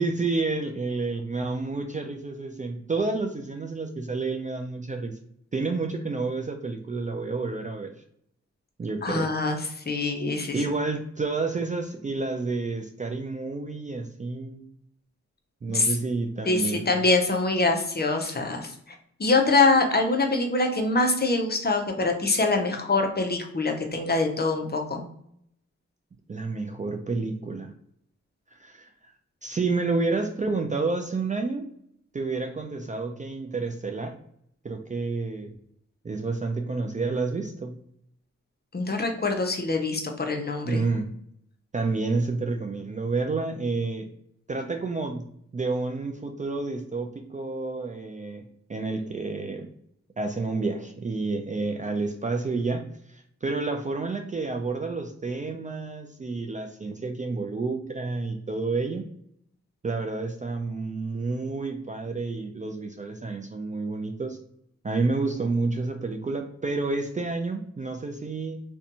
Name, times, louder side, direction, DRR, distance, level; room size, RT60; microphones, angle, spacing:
voice 1, 0.0-5.2 5.5-7.9 8.8-9.3 10.5-14.6 15.6-17.0 26.3-27.7 28.5-28.9 29.4-31.7 32.1-34.2 34.6-35.5 36.0-37.8 40.6-41.1 41.7-44.1 44.5-45.3 45.5-48.4 48.7-49.7 50.2-59.0 59.8-64.4 64.8-68.6, right 3 dB, 25° right, 4 dB, 0.3 m, -29 dB
voice 2, 9.0-10.6 15.7-16.0 16.5-18.7 19.2-25.0 38.7-40.8, left 3 dB, 35° left, 3 dB, 0.6 m, -24 dB
2.5 x 2.2 x 2.7 m, 0.70 s
cardioid pair, 45°, 30 cm